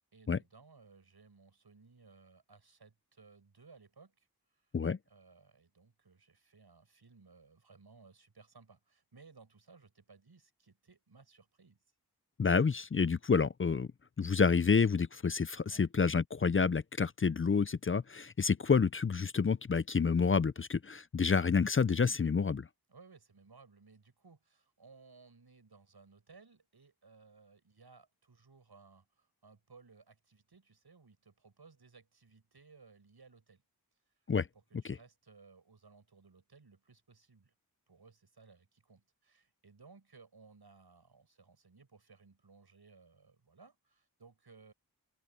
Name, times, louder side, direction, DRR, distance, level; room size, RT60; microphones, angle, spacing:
voice 1, 0.1-4.7 5.1-11.8 15.7-15.8 22.9-33.6 34.5-37.5 37.9-44.7, right 4 dB, 90° right, 7.5 m, -60 dB
voice 2, 12.4-13.9 14.2-22.7 34.3-34.5, left 5 dB, 35° left, 0.4 m, -29 dB
open air
wide cardioid pair, 75°, 37 cm